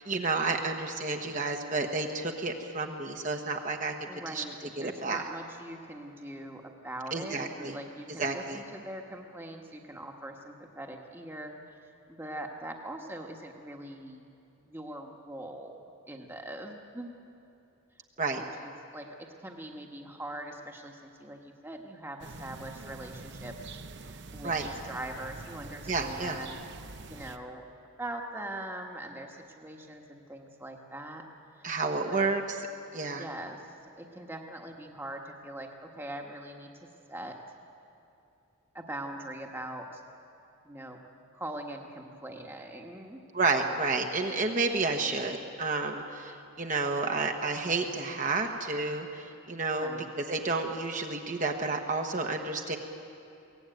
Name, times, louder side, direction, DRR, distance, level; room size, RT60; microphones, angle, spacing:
voice 1, 0.0-4.4 4.8-5.2 7.1-7.7 8.2-8.6 18.2-18.4 24.4-24.7 25.9-26.4 31.6-32.4 32.9-33.2 43.3-49.9 50.2-52.8, right 3 dB, 35° right, 3 dB, 1.3 m, -30 dB
voice 2, 4.1-11.5 12.1-14.2 14.7-15.8 16.1-17.2 18.4-19.1 19.4-23.5 23.9-26.6 27.1-27.6 28.0-31.2 31.6-31.7 32.1-32.3 33.2-33.6 34.0-35.7 36.0-36.7 37.1-37.3 38.7-40.0 40.6-41.0 41.3-43.2 49.8-50.1, right 1 dB, 10° right, 2 dB, 1.4 m, -42 dB
sound 1, 22.2-27.4, right 3 dB, 55° right, 0.8 m, -45 dB
23.0 x 17.5 x 9.3 m, 2.7 s
head